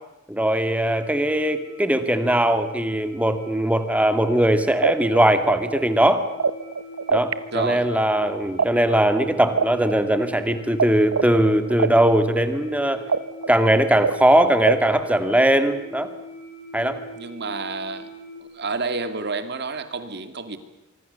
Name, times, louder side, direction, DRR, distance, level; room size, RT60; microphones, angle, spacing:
voice 1, 0.3-6.3 7.1-13.0 13.5-16.1 16.7-17.0, right 1 dB, 5° right, 9 dB, 2.1 m, -20 dB
sound 1, 0.7-18.4, left 1 dB, 70° left, 6.6 m, -42 dB
sound 2, 4.8-7.3 7.6-10.9 11.1-15.0, right 5 dB, 75° right, 1.1 m, -24 dB
voice 2, 7.5-7.9 17.1-18.1 18.4-20.6, right 4 dB, 55° right, 10 dB, 2.3 m, -29 dB
25.5 x 24.5 x 6.9 m, 0.93 s
head